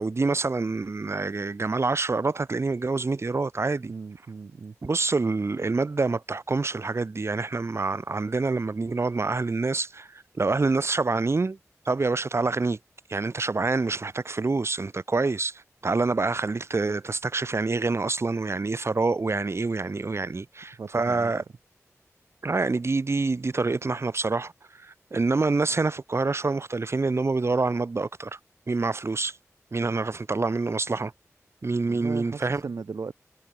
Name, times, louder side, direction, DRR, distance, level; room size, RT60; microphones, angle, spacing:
voice 1, 0.0-3.9 4.8-11.6 11.8-12.8 13.1-21.4 22.4-28.4 28.7-29.4 29.7-31.1 31.6-32.6, right 3 dB, 55° right, 0.9 m, -26 dB
voice 2, 3.8-4.7 20.8-21.3 31.9-33.1, right 4 dB, 85° right, 2.3 m, -37 dB
wide cardioid pair, 55°, 5 cm